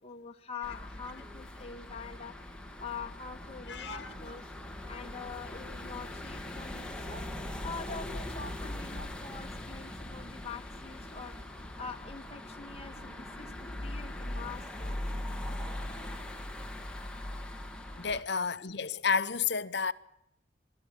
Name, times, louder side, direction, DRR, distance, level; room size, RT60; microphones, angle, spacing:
voice 1, 0.0-2.3 2.8-4.5 4.9-7.2 7.6-11.4 11.8-15.0, left 5 dB, 30° left, 1.4 m, -44 dB
sound 1, 0.6-18.2, left 1 dB, 5° left, 1.5 m, -41 dB
voice 2, 3.7-4.1 18.0-19.9, left 6 dB, 55° left, 0.8 m, -31 dB
26.0 x 12.5 x 9.0 m
head